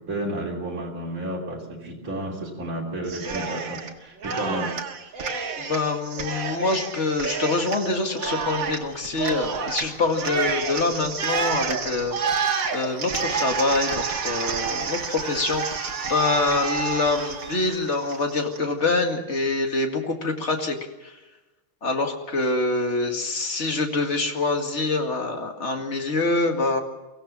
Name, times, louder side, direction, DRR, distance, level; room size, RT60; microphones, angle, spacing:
voice 1, 0.0-4.8, right 1 dB, 40° right, -2 dB, 3.7 m, -31 dB
Cheering, 3.1-3.9 4.2-18.6, right 5 dB, 60° right, 2.3 m, -29 dB
voice 2, 5.6-12.2 12.7-20.7 21.0-21.2 21.8-26.8, left 3 dB, 35° left, 3 dB, 2.3 m, -25 dB
23.5 x 16.0 x 7.4 m, 1.1 s
omnidirectional pair, 2.3 m